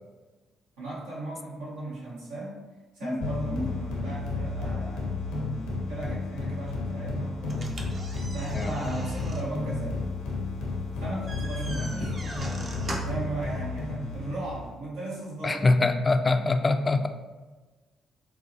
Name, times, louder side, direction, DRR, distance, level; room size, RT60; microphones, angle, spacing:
voice 1, 0.8-2.6 2.9-5.1 5.9-7.7 8.3-10.0 11.0-15.7, right 2 dB, 85° right, -8 dB, 1.2 m, -36 dB
sound 1, 3.2-14.7, left 3 dB, 80° left, 0.7 m, -32 dB
sound 2, 7.5-13.3, right 1 dB, 45° right, 0.6 m, -41 dB
voice 2, 15.4-17.1, left 3 dB, 35° left, 7 dB, 0.3 m, -24 dB
4.7 x 2.1 x 2.7 m, 1.3 s
hypercardioid pair, 50°, 0 cm